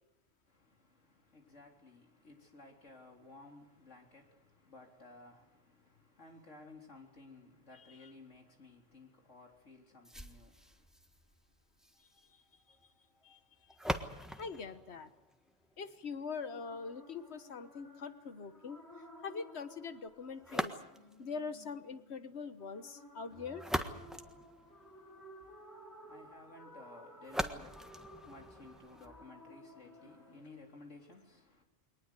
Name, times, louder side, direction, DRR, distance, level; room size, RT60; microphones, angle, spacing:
voice 1, 0.5-10.9 24.6-31.6, left 2 dB, 85° left, 4.1 m, -57 dB
sound 1, 10.0-16.0 20.4-21.3 23.3-25.2 27.2-29.2, equal, ahead, 1.4 m, -42 dB
voice 2, 14.3-15.1 15.8-18.8 19.2-20.7 21.2-23.6, left 5 dB, 60° left, 1.5 m, -43 dB
sound 2, 16.5-30.4, equal, 15° left, 6.0 m, -56 dB
22.5 x 19.5 x 8.3 m
omnidirectional pair, 1.2 m